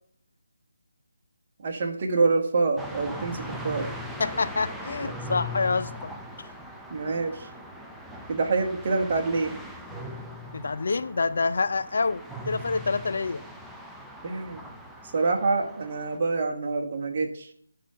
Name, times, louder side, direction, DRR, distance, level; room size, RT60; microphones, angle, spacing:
voice 1, 1.6-3.9 6.9-7.5 8.3-9.6 14.2-14.6 15.1-17.5, right 3 dB, 35° right, 1.5 m, -26 dB
sound 1, 2.8-16.2, equal, ahead, 0.5 m, -40 dB
voice 2, 4.2-6.1 10.5-13.4, left 4 dB, 60° left, 0.5 m, -27 dB
10.5 x 3.8 x 6.7 m
figure-of-eight pair, 165°, 0 cm